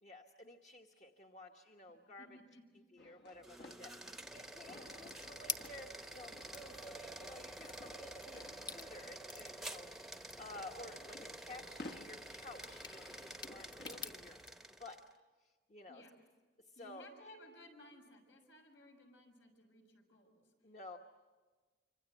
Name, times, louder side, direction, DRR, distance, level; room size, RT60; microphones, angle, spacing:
voice 1, 0.0-2.3 2.9-8.4 8.7-9.9 10.4-14.4 14.8-15.0 15.4-16.0 16.7-17.1 20.6-21.0, left 1 dB, 40° left, 3 dB, 1.2 m, -53 dB
voice 2, 2.2-2.8 8.3-8.5 15.9-16.2 16.7-20.5, left 1 dB, 90° left, 2 dB, 6.6 m, -59 dB
sound 1, 3.0-14.4, left 2 dB, 65° left, 1.3 m, -57 dB
sound 2, 3.3-15.1, right 1 dB, ahead, 0.8 m, -50 dB
sound 3, 4.9-14.5, left 4 dB, 25° left, 0.9 m, -51 dB
26.0 x 26.0 x 8.0 m, 1.3 s
head